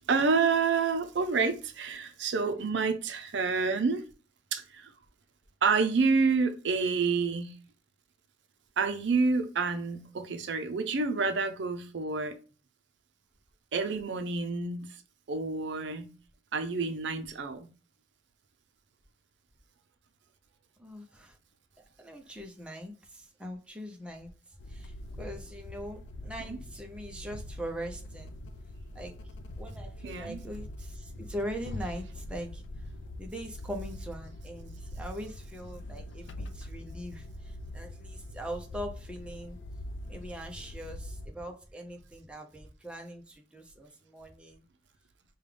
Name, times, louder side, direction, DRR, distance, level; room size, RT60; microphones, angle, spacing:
voice 1, 0.1-4.0 4.5-4.9 5.6-7.5 8.8-12.3 13.7-14.9 15.3-16.1 16.5-17.7 26.4-26.6 30.0-30.4, right 4 dB, 65° right, 0.5 m, -28 dB
voice 2, 20.8-21.4 22.0-24.3 24.7-28.3 28.9-29.2 29.6-32.6 33.2-39.6 40.1-44.6, equal, 5° right, 0.6 m, -41 dB
sound 1, 24.6-41.3, left 1 dB, 70° left, 0.4 m, -43 dB
5.2 x 2.3 x 3.3 m
head